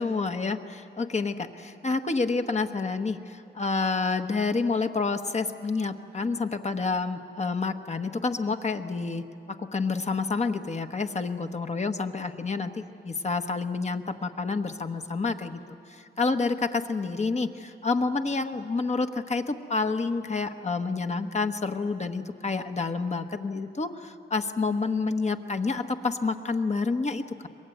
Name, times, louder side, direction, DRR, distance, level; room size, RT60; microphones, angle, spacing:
voice 1, 0.0-15.6 15.9-27.5, left 4 dB, 35° left, 6 dB, 1.2 m, -29 dB
23.5 x 21.0 x 9.3 m, 2.7 s
wide cardioid pair, 95°, 19 cm